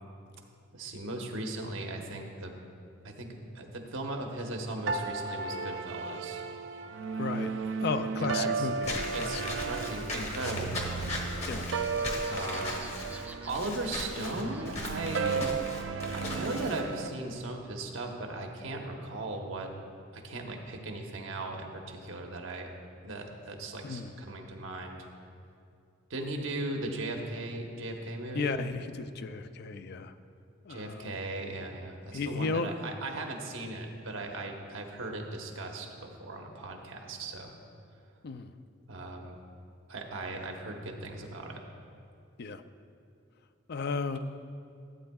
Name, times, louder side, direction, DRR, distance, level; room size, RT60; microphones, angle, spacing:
voice 1, 0.7-2.5 3.0-3.3 3.5-6.4 8.2-8.7 9.1-11.1 12.3-12.9 13.4-15.5 16.1-19.7 20.1-22.7 23.0-25.1 26.1-28.6 30.7-37.5 38.9-39.4 39.9-41.6, right 2 dB, 85° right, 2 dB, 1.1 m, -37 dB
sound 1, 4.9-17.1, right 5 dB, 65° right, 0.4 m, -35 dB
voice 2, 7.2-7.5 7.8-9.3 11.4-11.8 23.8-24.1 28.4-30.1 30.7-31.1 32.1-32.9 38.2-38.5 42.4-42.6 43.7-44.2, left 4 dB, 55° left, 10 dB, 0.4 m, -34 dB
Walk footsteps / Squeak, 8.8-16.8, left 2 dB, 35° left, 1.2 m, -38 dB
Laughter, 10.1-15.2 15.5-17.4, right 2 dB, 10° right, 0.5 m, -52 dB
15.0 x 8.8 x 2.3 m, 2.5 s
head